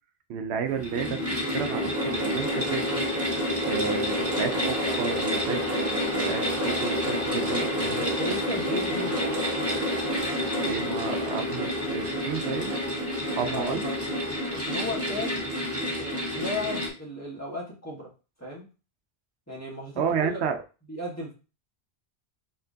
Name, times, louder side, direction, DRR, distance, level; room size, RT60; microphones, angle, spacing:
voice 1, 0.3-1.2 1.5-3.0 3.6-8.0 10.7-12.7 13.3-13.8 20.0-20.6, right 6 dB, 85° right, 7 dB, 0.8 m, -31 dB
sound 1, 0.7-16.9, equal, 15° right, 1.4 m, -28 dB
voice 2, 8.0-9.4 10.2-10.4 13.4-14.1 14.5-15.4 16.0-18.1 18.4-18.6 19.5-20.4 20.9-21.3, left 1 dB, 15° left, -4 dB, 1.5 m, -35 dB
4.3 x 3.7 x 2.7 m, 0.33 s
omnidirectional pair, 1.1 m